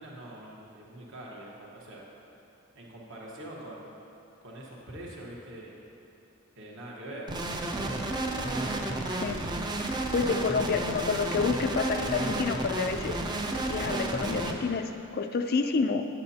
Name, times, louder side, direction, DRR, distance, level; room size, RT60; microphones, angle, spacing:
voice 1, 0.0-2.1 2.7-4.0 4.4-5.8 6.6-8.0, right 1 dB, 60° right, -3 dB, 1.2 m, -44 dB
sound 1, 7.3-14.5, right 2 dB, 20° right, 0.4 m, -31 dB
voice 2, 9.1-9.4 9.8-16.0, left 4 dB, 45° left, 7 dB, 0.4 m, -29 dB
8.4 x 8.3 x 2.8 m, 2.8 s
head